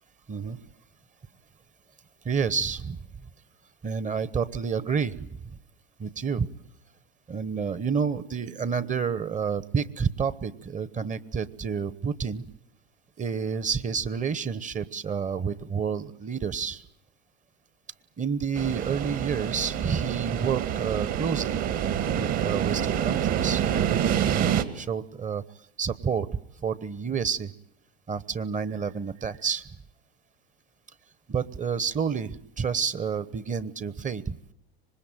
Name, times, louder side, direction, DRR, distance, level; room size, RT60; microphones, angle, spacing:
voice 1, 0.3-0.6 2.2-3.0 3.8-5.6 6.0-6.5 7.3-12.4 13.2-16.8 18.2-21.7 22.2-25.4 25.8-26.3 26.6-27.5 28.1-29.7 31.3-34.4, right 6 dB, 25° right, 17 dB, 1.1 m, -29 dB
sound 1, 18.6-24.6, right 9 dB, 50° right, 2.1 m, -27 dB
25.5 x 20.5 x 9.0 m, 0.76 s
hypercardioid pair, 95°, 33 cm